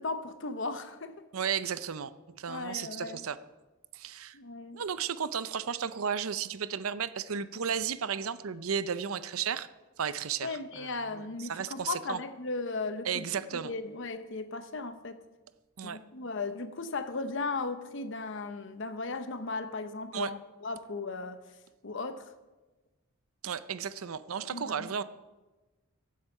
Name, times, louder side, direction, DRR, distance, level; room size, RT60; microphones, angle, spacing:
voice 1, 0.0-1.2 2.5-3.2 4.3-4.8 10.4-15.2 15.8-21.4 21.8-22.3 24.5-24.9, left 3 dB, 60° left, 10 dB, 0.9 m, -36 dB
voice 2, 1.3-3.4 3.9-4.4 4.7-9.7 10.0-12.2 13.0-13.7 15.8-16.0 20.1-20.3 23.4-25.0, right 7 dB, 80° right, 14 dB, 0.6 m, -34 dB
15.5 x 8.5 x 5.5 m, 1.2 s
head